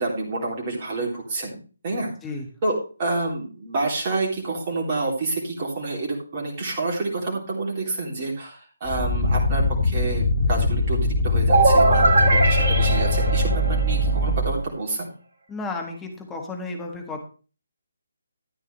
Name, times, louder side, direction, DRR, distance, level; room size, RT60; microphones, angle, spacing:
voice 1, 0.0-1.6 1.8-2.1 2.6-15.1, right 2 dB, 30° right, -2 dB, 3.2 m, -28 dB
sound 1, 8.8-14.6, left 2 dB, 40° left, 1.3 m, -22 dB
sound 2, 11.5-14.3, right 3 dB, 55° right, 1.9 m, -20 dB
voice 2, 15.5-17.2, left 3 dB, 10° left, 3 dB, 1.6 m, -33 dB
13.0 x 9.1 x 3.2 m, 0.37 s
figure-of-eight pair, 145°, 0 cm